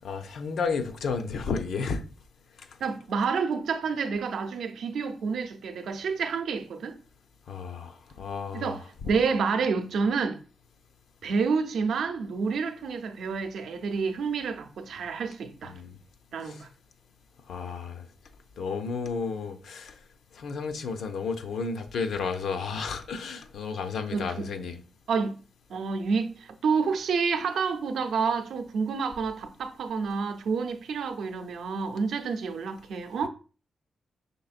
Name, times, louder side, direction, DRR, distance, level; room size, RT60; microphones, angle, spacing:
voice 1, 0.0-2.0 7.5-8.8 15.6-16.0 16.4-16.6 17.5-18.1 18.6-19.9 20.3-24.8 33.2-33.3, left 5 dB, 75° left, 0.5 m, -32 dB
voice 2, 2.8-7.0 8.5-10.4 11.2-15.7 16.3-16.7 24.1-24.5 25.1-25.4 25.7-33.3, right 5 dB, 80° right, 0.6 m, -29 dB
5.3 x 3.5 x 2.4 m
wide cardioid pair, 140°, 0 cm